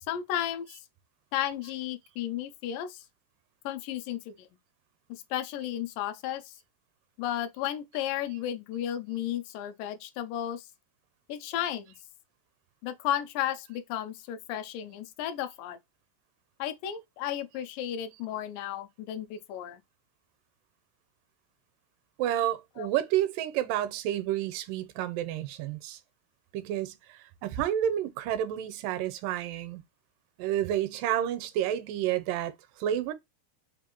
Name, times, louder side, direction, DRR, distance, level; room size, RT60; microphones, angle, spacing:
voice 1, 0.1-0.8 1.3-3.0 3.7-4.5 5.1-6.5 7.2-10.7 11.3-11.9 12.8-15.8 16.6-19.8 22.8-22.9, left 11 dB, 85° left, 2.1 m, -33 dB
voice 2, 22.2-26.0 26.5-29.8 30.4-33.1, right 11 dB, 85° right, 2.2 m, -30 dB
5.2 x 2.4 x 2.8 m
omnidirectional pair, 3.8 m